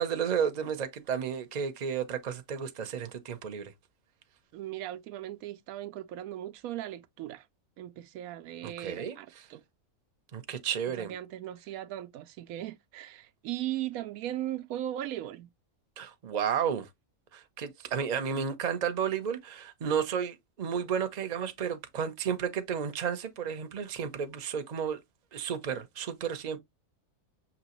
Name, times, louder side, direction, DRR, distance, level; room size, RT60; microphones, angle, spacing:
voice 1, 0.0-3.7 8.6-9.2 10.3-11.1 16.0-16.9 17.3-25.0 25.3-26.6, right 7 dB, 40° right, 0.7 m, -32 dB
voice 2, 4.5-7.5 7.8-9.6 10.9-15.5, right 13 dB, 85° right, 1.0 m, -38 dB
6.0 x 3.0 x 3.0 m
omnidirectional pair, 1.4 m